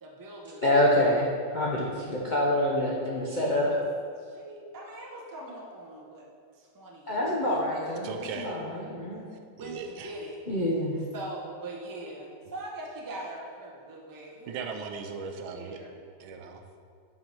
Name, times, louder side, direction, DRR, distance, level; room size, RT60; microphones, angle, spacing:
voice 1, 0.0-0.6 3.2-3.8 4.2-6.2 6.5-7.4 7.9-8.2 9.6-10.4 11.1-14.7 15.5-16.0, right 2 dB, 25° right, -2 dB, 0.4 m, -42 dB
voice 2, 0.6-3.7 7.1-9.2 10.5-11.0, left 1 dB, 65° left, -4 dB, 0.4 m, -26 dB
voice 3, 8.0-8.6 9.6-10.1 14.5-15.8 16.2-16.6, right 5 dB, 85° right, 5 dB, 1.5 m, -37 dB
7.8 x 5.7 x 4.5 m, 2.2 s
omnidirectional pair, 2.2 m